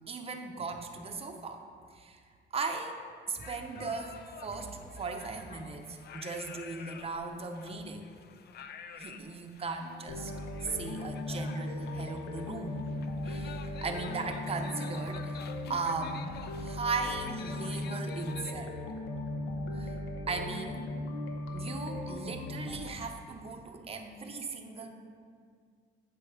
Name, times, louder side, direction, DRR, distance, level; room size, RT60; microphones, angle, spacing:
voice 1, 0.1-1.6 1.9-2.2 2.5-3.0 3.3-8.1 9.0-10.3 10.7-12.8 13.2-15.4 15.7-16.2 16.6-18.8 19.7-20.0 20.3-20.9 21.5-24.9, right 4 dB, 30° right, 4 dB, 0.7 m, -37 dB
sound 1, 3.4-18.5, left 7 dB, 55° left, 0.4 m, -50 dB
sound 2, 10.1-22.9, left 1 dB, 90° left, 0.7 m, -38 dB
7.9 x 5.2 x 3.6 m, 2.1 s
cardioid pair, 90°, 20 cm